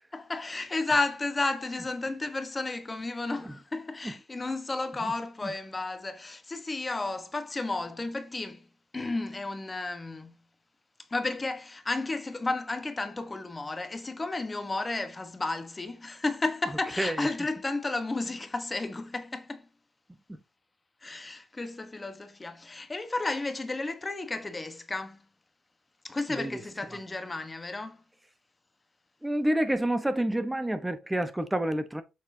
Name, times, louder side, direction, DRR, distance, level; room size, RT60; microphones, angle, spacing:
voice 1, 0.1-8.7 8.9-10.3 11.1-19.7 21.0-25.2 26.0-28.0, left 2 dB, 20° left, 1.0 m, -32 dB
voice 2, 17.0-17.3 20.3-20.4 26.3-26.6 26.9-27.0 29.2-32.0, right 1 dB, 10° right, 0.8 m, -29 dB
7.2 x 6.1 x 2.7 m
cardioid pair, 90°, 0 cm